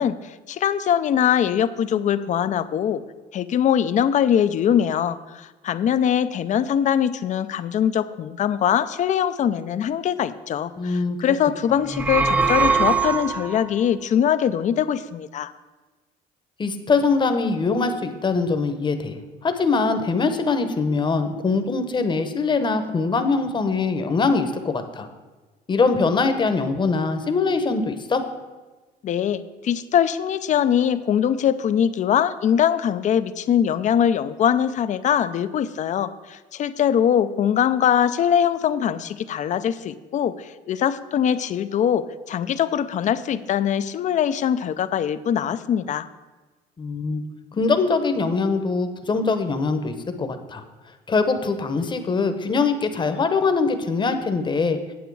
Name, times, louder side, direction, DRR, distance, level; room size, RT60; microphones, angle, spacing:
voice 1, 0.0-3.0 3.3-15.5 29.0-46.1, left 9 dB, 45° left, 13 dB, 0.5 m, -22 dB
voice 2, 10.8-11.2 16.6-25.1 25.7-28.2 46.8-47.2 47.5-50.6 51.1-54.8, left 4 dB, 25° left, 8 dB, 0.9 m, -22 dB
sound 1, 11.8-13.7, right 5 dB, 10° right, 0.4 m, -21 dB
9.2 x 7.9 x 4.7 m, 1.3 s
cardioid pair, 110°, 17 cm